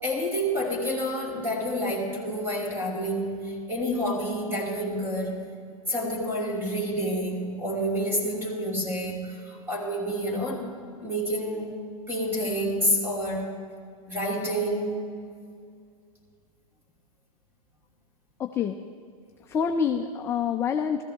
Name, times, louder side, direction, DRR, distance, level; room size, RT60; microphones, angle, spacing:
voice 1, 0.0-5.4 5.9-10.7 11.0-11.7 12.1-13.5 14.1-15.1, equal, 10° right, -2 dB, 2.9 m, -28 dB
voice 2, 18.4-18.8 19.5-21.0, left 7 dB, 15° left, 4 dB, 0.4 m, -26 dB
16.5 x 14.0 x 3.5 m, 2.2 s
hypercardioid pair, 145°, 19 cm